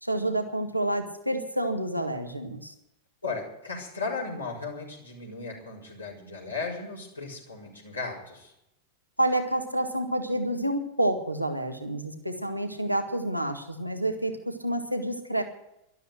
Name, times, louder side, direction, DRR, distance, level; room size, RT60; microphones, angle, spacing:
voice 1, 0.0-2.7 9.2-15.4, right 1 dB, 90° right, 6 dB, 1.7 m, -29 dB
voice 2, 3.2-8.5, left 4 dB, 80° left, -5 dB, 4.5 m, -36 dB
12.5 x 12.5 x 7.9 m, 0.84 s
figure-of-eight pair, 90°, 0 cm